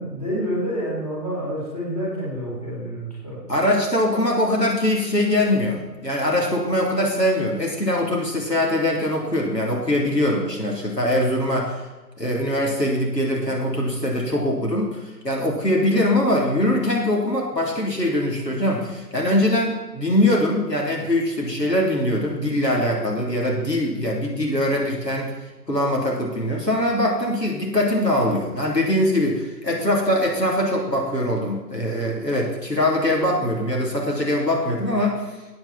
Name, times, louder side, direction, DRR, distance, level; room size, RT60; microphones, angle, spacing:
voice 1, 0.0-3.4, equal, 20° left, -8 dB, 3.6 m, -28 dB
voice 2, 3.5-11.8 12.2-25.3 25.7-35.2, left 1 dB, 75° left, -2 dB, 3.5 m, -22 dB
13.5 x 9.0 x 4.3 m, 1.2 s
figure-of-eight pair, 175°, 50 cm